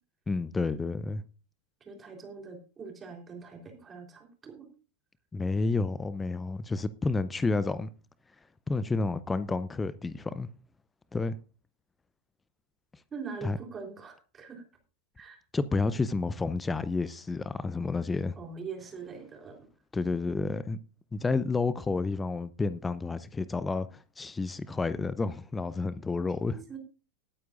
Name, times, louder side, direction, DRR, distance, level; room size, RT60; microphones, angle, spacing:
voice 1, 0.3-1.2 5.3-7.9 8.7-10.5 11.1-11.4 13.4-13.6 15.5-18.4 19.9-20.8 21.1-26.6, left 3 dB, 10° left, 0.6 m, -30 dB
voice 2, 1.9-4.7 13.1-14.6 15.2-15.4 18.4-19.6 26.5-26.8, right 5 dB, 20° right, 3.7 m, -43 dB
19.5 x 9.2 x 2.5 m
figure-of-eight pair, 90°, 0 cm